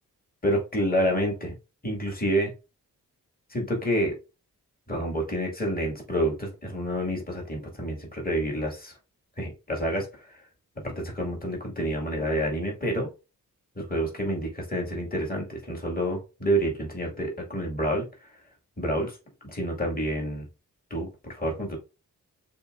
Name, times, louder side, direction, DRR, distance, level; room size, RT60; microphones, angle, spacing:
voice 1, 0.4-1.5 1.8-2.5 3.5-4.2 4.9-8.9 9.4-10.4 10.8-13.1 13.8-18.3 18.8-19.2 19.4-20.5 20.9-21.8, equal, 25° left, -1 dB, 2.2 m, -28 dB
6.7 x 3.0 x 2.6 m, 0.30 s
cardioid pair, 45°, 36 cm